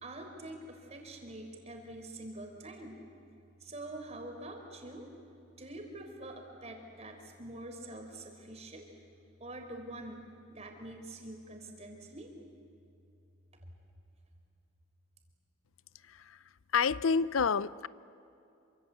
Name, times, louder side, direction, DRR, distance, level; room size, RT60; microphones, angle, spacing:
voice 1, 0.0-3.0 3.6-5.1 5.6-8.9 9.4-10.2 10.5-12.3, right 1 dB, 35° right, 3 dB, 4.0 m, -45 dB
voice 2, 16.7-17.9, left 5 dB, 90° left, 18 dB, 0.6 m, -29 dB
27.0 x 25.5 x 8.2 m, 2.7 s
head